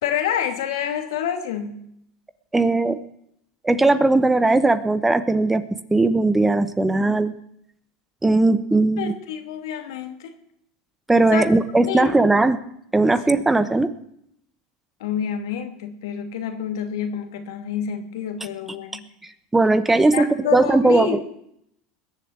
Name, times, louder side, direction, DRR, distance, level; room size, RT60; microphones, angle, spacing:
voice 1, 0.0-1.8 9.0-10.3 11.3-11.4 11.8-12.3 15.0-19.1 20.1-21.2, left 8 dB, 85° left, 6 dB, 2.6 m, -28 dB
voice 2, 2.5-3.0 3.6-5.6 5.9-7.3 8.2-9.1 11.1-12.6 12.9-13.9 19.5-21.2, right 2 dB, 10° right, 13 dB, 1.0 m, -18 dB
21.0 x 7.3 x 8.8 m, 0.73 s
supercardioid pair, 120°, 2 cm